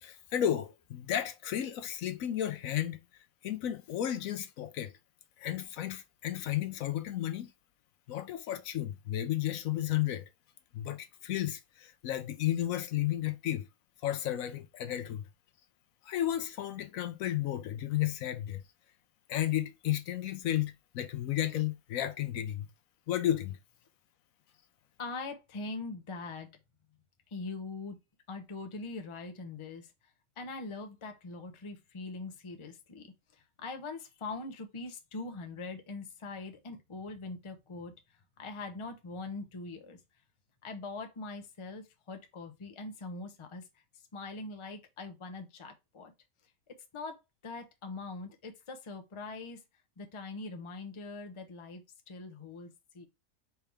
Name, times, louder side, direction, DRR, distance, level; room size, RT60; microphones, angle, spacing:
voice 1, 0.0-3.0 3.4-4.9 5.4-7.5 8.1-10.3 10.7-13.7 14.0-15.2 16.0-18.6 19.3-22.7 23.1-23.6, left 12 dB, 75° left, 1.0 m, -33 dB
voice 2, 25.0-26.5 27.3-28.0 28.3-29.9 30.4-40.0 40.6-43.7 44.1-46.1 46.7-49.6 50.0-53.1, left 3 dB, 30° left, 0.6 m, -42 dB
4.6 x 3.4 x 3.2 m
omnidirectional pair, 1.5 m